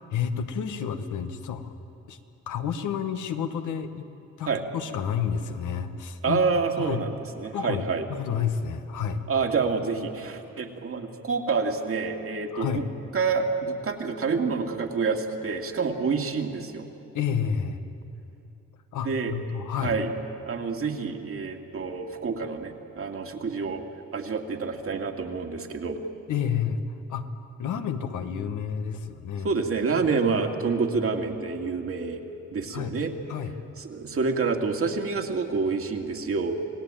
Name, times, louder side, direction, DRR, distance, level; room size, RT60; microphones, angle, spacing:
voice 1, 0.1-1.7 2.1-2.2 2.5-4.1 4.4-6.4 6.8-7.1 7.5-9.2 12.5-12.9 17.1-17.8 18.9-20.0 26.3-26.8 27.1-27.3 27.6-29.5 32.7-33.0 33.3-33.6, left 7 dB, 80° left, 7 dB, 1.6 m, -30 dB
voice 2, 6.2-7.1 7.4-8.0 9.3-12.8 13.1-16.9 19.0-19.3 19.8-20.1 20.4-23.8 24.1-26.0 29.4-32.2 32.5-33.1 33.8-36.6, right 4 dB, 50° right, 3 dB, 2.4 m, -27 dB
28.5 x 18.0 x 9.1 m, 2.9 s
cardioid pair, 90°, 30 cm